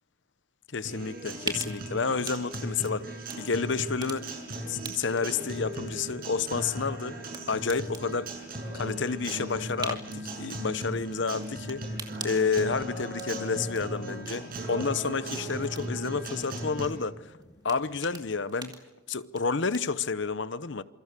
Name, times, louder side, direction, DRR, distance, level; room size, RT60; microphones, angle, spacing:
voice 1, 0.7-4.3 4.7-7.2 7.5-8.3 8.7-11.8 12.2-17.3 17.6-18.8 19.1-20.8, left 5 dB, 60° left, 0.8 m, -30 dB
sound 1, 0.7-20.0, right 4 dB, 20° right, 2.4 m, -46 dB
Acoustic guitar, 0.8-16.9, right 1 dB, 45° right, 6.2 m, -37 dB
sound 2, 1.2-18.4, left 1 dB, 30° left, 2.4 m, -53 dB
27.5 x 24.5 x 6.8 m
head